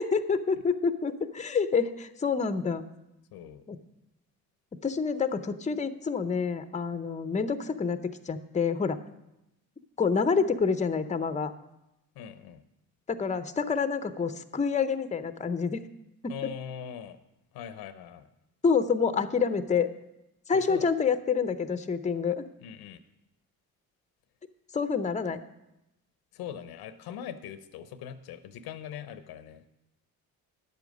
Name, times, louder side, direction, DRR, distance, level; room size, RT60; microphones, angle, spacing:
voice 1, 0.0-2.8 3.7-3.8 4.8-9.0 10.0-11.5 13.1-15.8 16.2-16.5 18.6-19.9 20.5-22.5 24.7-25.4, left 5 dB, 20° left, 11 dB, 0.7 m, -27 dB
voice 2, 3.3-3.6 12.1-12.6 16.3-17.2 17.5-18.3 20.5-20.9 22.6-23.0 26.3-29.6, left 9 dB, 80° left, 12 dB, 0.8 m, -41 dB
10.5 x 8.2 x 5.2 m, 0.88 s
supercardioid pair, 70°, 37 cm